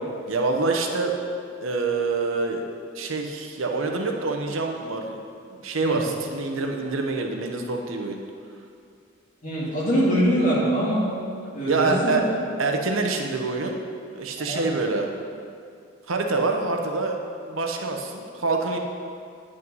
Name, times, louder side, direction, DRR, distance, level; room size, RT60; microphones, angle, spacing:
voice 1, 0.3-1.1 1.6-2.6 2.9-5.2 5.5-8.2 10.0-10.2 11.7-12.2 12.6-13.8 14.1-15.1 16.1-17.2 17.5-18.8, right 3 dB, 80° right, 3 dB, 0.9 m, -26 dB
voice 2, 9.4-11.0 11.5-12.2 14.4-14.6, equal, 40° left, -7 dB, 2.3 m, -23 dB
9.6 x 5.3 x 5.5 m, 2.3 s
head